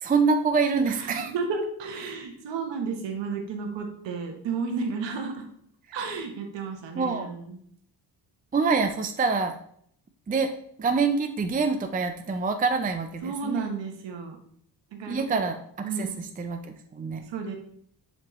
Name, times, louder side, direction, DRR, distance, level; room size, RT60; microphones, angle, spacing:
voice 1, 0.0-1.3 2.0-2.2 5.9-6.0 6.9-7.3 8.5-9.6 10.3-10.5 10.8-13.7 15.1-17.2, right 4 dB, 20° right, 6 dB, 0.5 m, -26 dB
voice 2, 1.3-5.5 5.9-7.5 13.2-14.4 14.9-15.4 15.8-16.2 17.3-17.5, right 4 dB, 85° right, 4 dB, 1.2 m, -32 dB
7.4 x 4.3 x 3.1 m, 0.65 s
cardioid pair, 85°, 43 cm